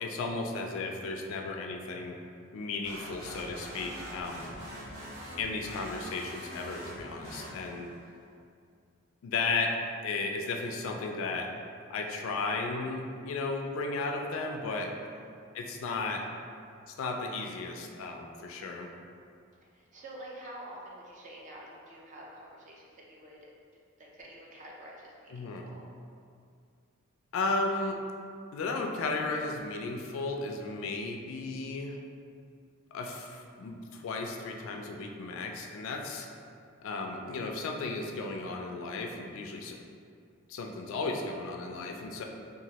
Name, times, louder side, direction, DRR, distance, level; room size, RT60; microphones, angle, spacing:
voice 1, 0.0-2.2 2.5-4.5 5.4-7.9 9.2-9.7 10.0-11.5 11.9-14.9 15.5-16.2 16.9-18.9 25.3-25.7 27.3-28.0 28.5-32.0 32.9-36.3 36.8-39.8 40.5-42.2, left 3 dB, 70° left, 2 dB, 0.3 m, -34 dB
sound 1, 2.8-8.0, equal, 70° right, 0.7 m, -44 dB
voice 2, 15.0-15.4 19.6-23.5 24.0-25.9, right 1 dB, 35° right, -3 dB, 0.4 m, -48 dB
2.9 x 2.4 x 2.8 m, 2.3 s
head